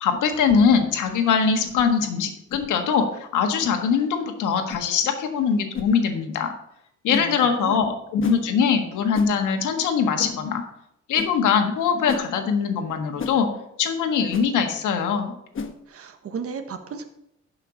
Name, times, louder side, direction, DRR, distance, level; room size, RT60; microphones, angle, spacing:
voice 1, 0.0-6.5 7.0-10.6 11.1-13.5 13.8-15.3, left 6 dB, 85° left, 5 dB, 1.6 m, -22 dB
sound 1, 0.5-0.7 1.6-1.8 2.5-2.7 3.6-3.7 4.7-4.9 5.7-5.9 7.1-7.3 8.2-8.4 9.1-9.3 10.2-10.4 11.1-11.3 12.1-12.3 13.2-13.4 14.3-14.5 15.5-15.7, left 5 dB, 40° left, 1.1 m, -32 dB
voice 2, 7.2-7.8 15.9-17.0, right 6 dB, 50° right, 7 dB, 1.3 m, -34 dB
11.0 x 5.8 x 5.0 m, 0.78 s
cardioid pair, 90°, 30 cm